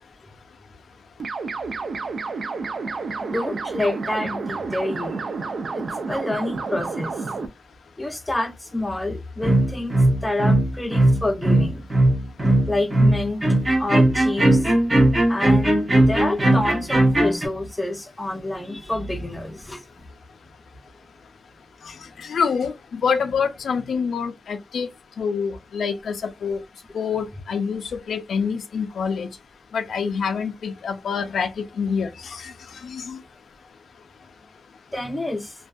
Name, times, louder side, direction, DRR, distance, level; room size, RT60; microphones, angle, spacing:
sound 1, 1.2-7.5, right 4 dB, 60° right, 0.4 m, -30 dB
voice 1, 3.2-5.2 5.7-5.8 6.1-7.5 8.0-11.8 12.7-13.4 13.8-14.6 15.3-19.8 34.9-35.5, left 2 dB, 15° left, 0.5 m, -28 dB
sound 2, 9.4-17.5, right 1 dB, 25° right, 0.9 m, -18 dB
voice 2, 22.2-24.9 25.2-26.6 26.9-27.8 28.1-29.3 29.7-32.5 32.8-33.2, left 6 dB, 80° left, 0.4 m, -26 dB
2.5 x 2.2 x 2.3 m
wide cardioid pair, 105°, 0 cm